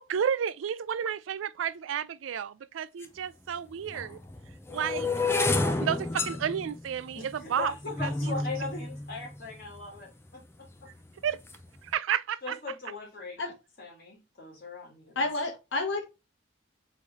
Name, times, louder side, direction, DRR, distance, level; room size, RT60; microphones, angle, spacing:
voice 1, 0.0-4.2 4.7-5.1 5.5-7.7 8.0-8.3 11.2-11.4 11.8-12.5, right 8 dB, 90° right, 0.4 m, -31 dB
sound 1, 3.0-3.1 3.9-10.0 10.7-11.1 11.3-11.7, left 3 dB, 15° left, 0.5 m, -31 dB
voice 2, 7.1-10.9 12.4-13.4 13.8-15.2, left 3 dB, 50° left, 2.2 m, -39 dB
voice 3, 15.1-16.0, left 2 dB, 75° left, 1.0 m, -30 dB
4.1 x 3.2 x 3.5 m
head